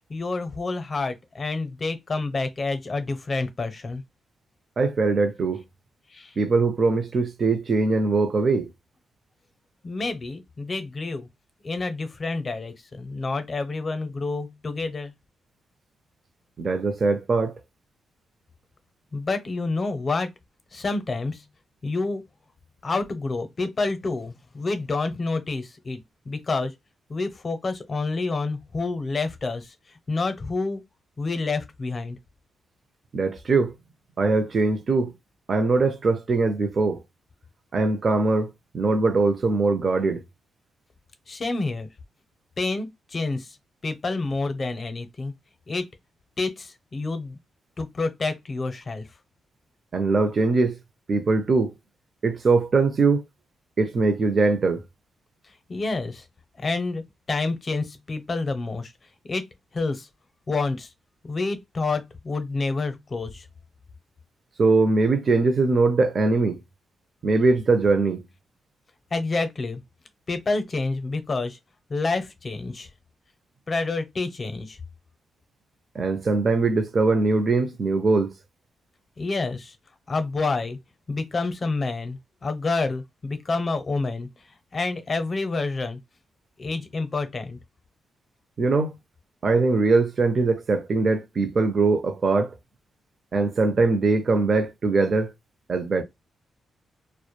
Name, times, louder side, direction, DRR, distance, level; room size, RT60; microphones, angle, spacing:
voice 1, 0.1-4.0 6.1-6.3 9.8-11.3 11.6-15.1 19.1-20.3 20.7-21.4 21.8-22.2 22.8-26.0 26.3-26.7 27.1-29.7 30.1-30.8 31.2-32.2 41.3-41.9 42.6-43.5 43.8-45.3 45.7-45.9 46.4-47.4 47.8-49.0 55.7-56.2 56.6-57.0 57.3-58.9 59.3-59.5 59.7-60.1 60.5-60.9 61.2-63.4 69.1-69.8 70.3-71.6 71.9-72.9 73.7-74.8 79.2-79.7 80.1-80.8 81.1-84.3 84.7-86.0 86.6-87.6, left 3 dB, 40° left, 0.6 m, -28 dB
voice 2, 4.8-5.6 6.4-8.7 16.6-17.5 33.1-33.7 34.2-35.1 35.5-37.0 37.7-40.2 49.9-50.8 51.1-51.7 52.2-53.2 53.8-54.8 64.6-66.6 67.2-68.2 76.0-78.3 88.6-88.9 89.4-92.5 93.3-95.3 95.7-96.0, right 3 dB, 50° right, 0.4 m, -21 dB
2.2 x 2.0 x 3.0 m
cardioid pair, 90°, 0 cm